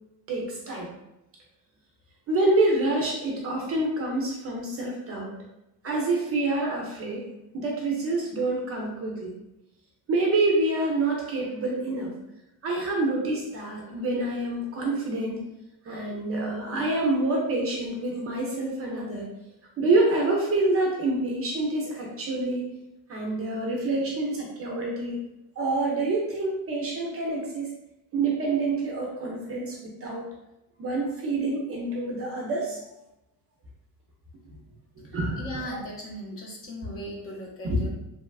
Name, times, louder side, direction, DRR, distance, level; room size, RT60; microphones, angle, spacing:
voice 1, 0.3-0.9 2.3-5.3 5.8-7.2 7.5-9.3 10.1-12.1 12.6-15.4 15.9-19.3 19.8-22.6 23.1-25.2 25.6-27.6 28.1-30.3 30.8-32.8 35.1-35.7 37.6-37.9, right 2 dB, 35° right, -1 dB, 0.4 m, -27 dB
voice 2, 35.4-37.9, equal, 30° left, -3 dB, 0.6 m, -38 dB
2.9 x 2.2 x 2.3 m, 0.91 s
cardioid pair, 150°, 42 cm